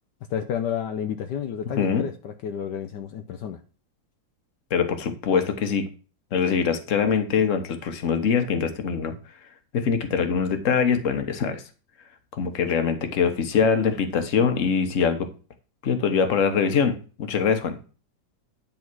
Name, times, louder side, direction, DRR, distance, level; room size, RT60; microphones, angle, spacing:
voice 1, 0.3-3.6, left 8 dB, 75° left, 6 dB, 1.3 m, -30 dB
voice 2, 4.7-5.9 6.3-9.1 9.7-11.6 12.4-15.3 15.8-17.8, left 6 dB, 45° left, 7 dB, 1.4 m, -23 dB
10.5 x 3.9 x 6.1 m, 0.36 s
omnidirectional pair, 2.0 m